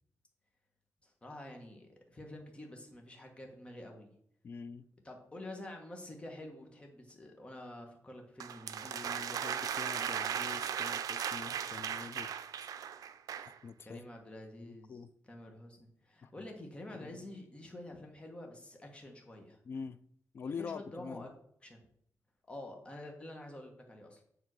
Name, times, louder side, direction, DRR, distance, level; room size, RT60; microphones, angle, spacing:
voice 1, 1.0-4.1 5.0-9.1 13.8-15.0 15.2-19.6 20.4-21.3 21.6-21.8 22.5-24.2, left 1 dB, 20° left, 1.3 m, -48 dB
voice 2, 4.4-4.8 8.8-12.3 13.6-14.1 14.6-15.1 16.2-16.5 16.9-17.2 19.7-20.0 20.3-21.3, left 5 dB, 40° left, 0.4 m, -45 dB
sound 1, 8.4-13.6, right 8 dB, 85° right, 0.4 m, -37 dB
7.3 x 3.7 x 6.2 m
wide cardioid pair, 170°, 6 cm